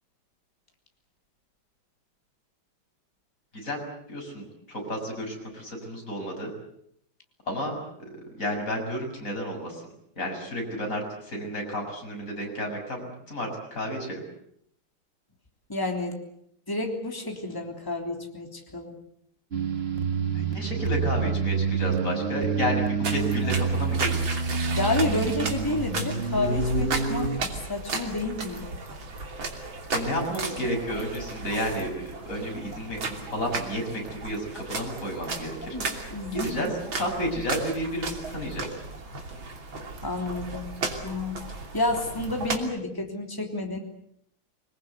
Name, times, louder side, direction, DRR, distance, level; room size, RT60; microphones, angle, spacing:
voice 1, 3.5-6.5 7.5-7.8 8.4-9.8 10.2-14.2 20.5-24.2 29.9-36.1 36.3-36.7 37.0-38.7, equal, 40° left, 1 dB, 7.2 m, -31 dB
voice 2, 15.7-16.2 16.7-19.0 24.7-28.7 35.6-36.7 40.0-40.8 41.0-43.8, left 2 dB, 10° left, 2 dB, 3.2 m, -30 dB
sound 1, 19.5-27.4, right 5 dB, 35° right, 1.7 m, -27 dB
sound 2, 23.0-42.6, right 3 dB, 85° right, 3.7 m, -35 dB
26.5 x 21.0 x 8.1 m, 0.72 s
omnidirectional pair, 2.1 m